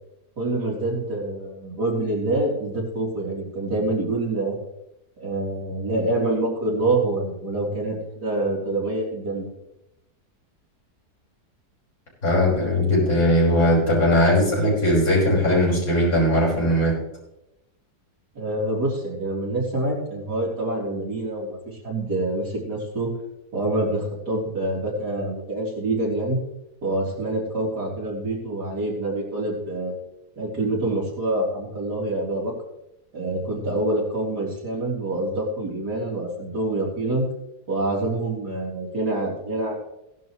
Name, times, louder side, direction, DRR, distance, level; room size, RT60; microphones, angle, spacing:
voice 1, 0.4-4.6 5.2-9.5 18.4-23.1 23.5-26.4 26.8-30.0 30.4-32.5 33.1-37.3 37.7-39.7, right 2 dB, 85° right, -3 dB, 4.0 m, -26 dB
voice 2, 12.2-17.0, left 1 dB, 60° left, -5 dB, 6.3 m, -19 dB
17.0 x 11.5 x 3.1 m, 0.89 s
omnidirectional pair, 1.7 m